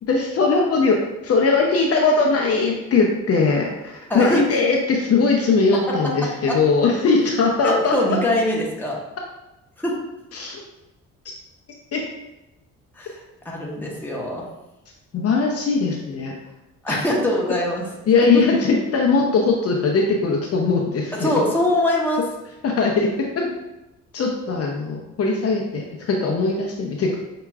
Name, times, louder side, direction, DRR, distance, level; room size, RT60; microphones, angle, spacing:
voice 1, 0.0-1.0 1.2-8.2 10.3-10.6 11.9-12.0 15.1-16.3 16.9-17.0 18.1-21.3 22.6-23.4 24.1-27.2, left 4 dB, 50° left, 0 dB, 0.7 m, -20 dB
voice 2, 4.1-4.4 6.5-6.6 7.6-9.0 9.8-9.9 12.9-14.5 16.8-17.8 21.2-22.2, left 1 dB, 5° left, -3 dB, 1.0 m, -22 dB
5.6 x 2.9 x 2.4 m, 0.96 s
cardioid pair, 90°, 30 cm